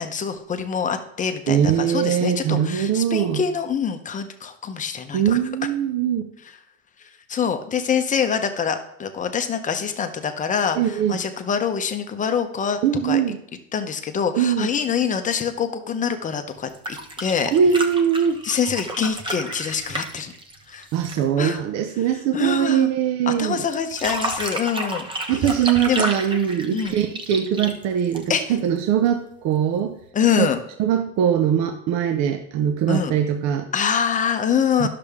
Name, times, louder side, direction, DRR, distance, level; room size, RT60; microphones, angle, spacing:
voice 1, 0.0-5.4 7.3-13.2 13.7-17.5 18.4-20.3 20.7-20.9 21.4-21.6 22.3-22.9 23.3-25.6 25.9-26.1 26.7-27.0 28.3-28.6 30.1-30.6 32.9-33.1 33.7-34.9, left 7 dB, 25° left, 8 dB, 0.7 m, -25 dB
voice 2, 1.5-3.4 5.1-6.3 10.8-11.2 12.8-13.4 14.3-14.7 17.5-18.4 20.9-23.6 25.3-30.0 30.4-30.5 30.8-33.7 34.8-34.9, right 9 dB, 60° right, 7 dB, 0.7 m, -21 dB
sound 1, 16.6-21.3 23.7-28.6 30.0-30.1, right 1 dB, 15° right, 0.9 m, -31 dB
10.5 x 6.7 x 3.6 m, 0.73 s
cardioid pair, 140°, 31 cm